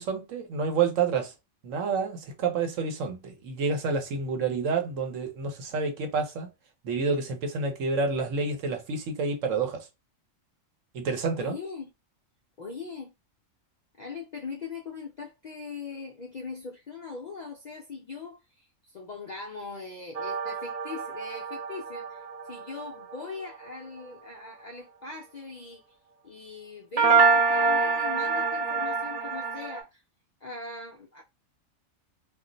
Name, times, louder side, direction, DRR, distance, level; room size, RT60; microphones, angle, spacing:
voice 1, 0.0-1.3 1.6-6.5 6.8-9.9 10.9-11.5, right 4 dB, 80° right, 1.1 m, -29 dB
voice 2, 11.3-11.9 12.6-13.1 14.0-25.8 26.2-30.0 30.4-31.2, left 4 dB, 60° left, 0.4 m, -41 dB
sound 1, 20.1-23.7 27.0-29.8, right 5 dB, 45° right, 0.5 m, -26 dB
2.5 x 2.0 x 3.8 m
omnidirectional pair, 1.3 m